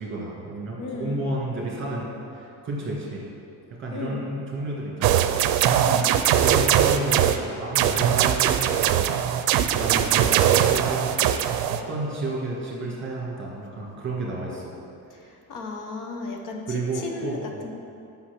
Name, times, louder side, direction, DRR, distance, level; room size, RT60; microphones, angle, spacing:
voice 1, 0.0-3.2 3.8-5.3 6.4-9.1 9.6-11.0 11.7-14.8 15.2-15.3 16.7-17.6, right 2 dB, 35° right, -3 dB, 1.8 m, -31 dB
voice 2, 0.8-1.3 3.9-4.2 5.8-6.1 15.5-17.4 17.6-17.7, left 3 dB, 60° left, 3 dB, 0.8 m, -34 dB
sound 1, 5.0-7.4 7.7-11.8, right 10 dB, 80° right, 0.5 m, -21 dB
5.7 x 5.6 x 6.7 m, 2.6 s
cardioid pair, 160°, 35 cm